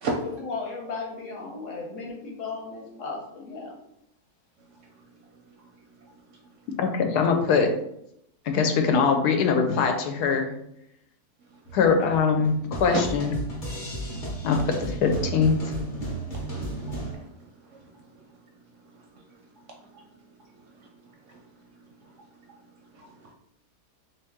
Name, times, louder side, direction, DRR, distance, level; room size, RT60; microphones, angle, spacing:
voice 1, 0.2-3.8, left 4 dB, 60° left, -1 dB, 1.1 m, -35 dB
voice 2, 6.8-7.7 8.5-10.5 11.7-13.4 14.4-15.6, left 5 dB, 85° left, 5 dB, 1.2 m, -22 dB
sound 1, 11.7-17.1, right 2 dB, 40° left, 0.9 m, -34 dB
voice 3, 22.9-23.3, right 3 dB, 65° right, 0 dB, 0.8 m, -31 dB
3.1 x 2.8 x 3.5 m, 0.76 s
omnidirectional pair, 1.7 m